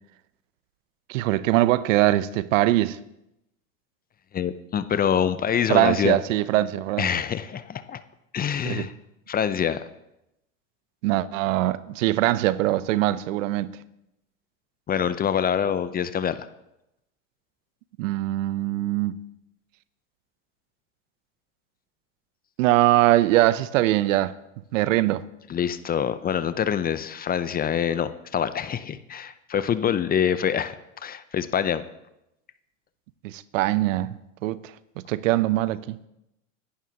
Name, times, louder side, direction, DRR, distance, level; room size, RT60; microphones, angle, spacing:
voice 1, 1.1-3.0 5.7-7.1 8.6-8.9 11.0-13.7 18.0-19.2 22.6-24.3 24.7-25.2 33.2-34.6 35.0-36.0, right 15 dB, 70° right, 0.7 m, -22 dB
voice 2, 4.3-6.2 7.0-8.0 8.3-8.9 9.3-9.8 14.9-16.5 25.5-30.8 31.0-31.8, left 8 dB, 25° left, 0.6 m, -25 dB
21.5 x 11.5 x 2.9 m
hypercardioid pair, 90°, 40 cm